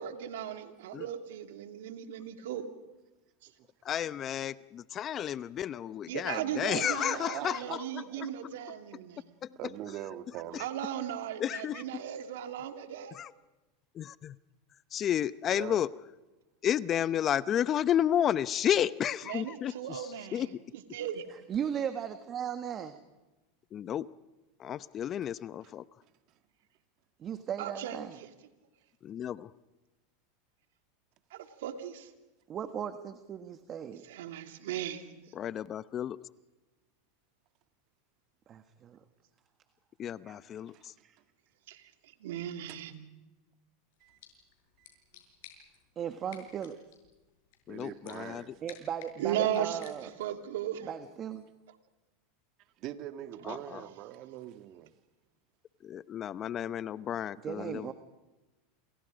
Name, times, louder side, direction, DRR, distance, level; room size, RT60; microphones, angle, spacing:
voice 1, 0.0-2.7 6.1-9.2 10.6-13.1 19.3-20.4 20.9-21.2 27.6-28.0 31.3-32.1 34.1-35.0 41.7-41.8 42.2-42.9 49.2-49.9 50.2-50.9, right 10 dB, 75° right, 2.7 m, -36 dB
voice 2, 3.8-8.3 9.4-9.6 10.5-10.6 11.4-11.8 13.1-13.3 13.9-14.4 14.9-15.9 16.6-20.6 23.7-24.1 24.6-25.8 29.0-29.5 35.3-36.3 40.0-40.9 47.7-48.5 53.4-53.8 55.8-57.9, left 10 dB, 35° left, 0.7 m, -32 dB
voice 3, 6.7-7.8 8.1-8.3 9.6-10.7 15.5-15.8 40.7-40.9 42.7-42.8 44.0-44.2 44.8-45.2 47.7-48.5 52.8-54.9, right 13 dB, 50° right, 1.8 m, -43 dB
voice 4, 21.3-23.0 27.2-28.2 32.5-34.0 38.5-39.0 40.2-40.4 41.0-41.2 46.0-46.8 48.6-50.1 50.8-51.4 57.4-57.9, right 8 dB, 35° right, 1.6 m, -37 dB
sound 1, 43.9-50.4, left 10 dB, 75° left, 6.4 m, -56 dB
28.5 x 28.5 x 5.1 m
hypercardioid pair, 105°, 0 cm